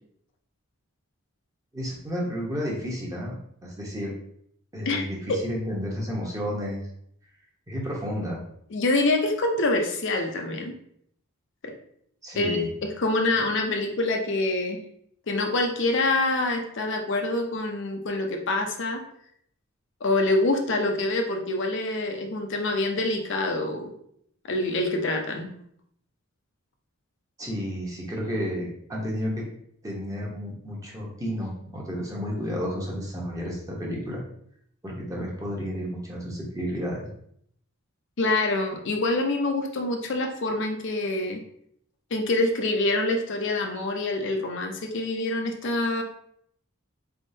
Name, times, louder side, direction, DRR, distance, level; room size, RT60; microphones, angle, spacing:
voice 1, 1.7-4.1 4.7-6.8 7.7-8.4 12.2-12.7 27.4-29.4 29.8-34.2 34.8-37.1, equal, 15° right, -3 dB, 0.9 m, -31 dB
voice 2, 8.7-10.7 11.6-11.7 12.4-14.8 15.3-19.0 20.0-23.9 24.5-25.5 38.2-41.4 42.1-46.0, left 2 dB, 55° left, 3 dB, 0.6 m, -26 dB
4.2 x 3.6 x 2.7 m, 0.69 s
head